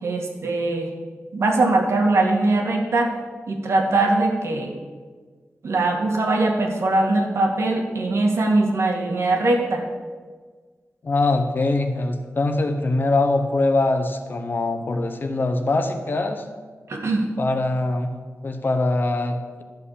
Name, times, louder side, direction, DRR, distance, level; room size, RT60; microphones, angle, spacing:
voice 1, 0.0-0.9 1.3-3.1 3.5-4.7 5.6-9.8 16.9-17.2, right 2 dB, 70° right, 2 dB, 1.8 m, -21 dB
voice 2, 11.0-16.4 17.4-18.1 18.4-19.6, left 2 dB, 45° left, 7 dB, 1.0 m, -23 dB
12.0 x 5.8 x 8.2 m, 1.5 s
wide cardioid pair, 165°, 5 cm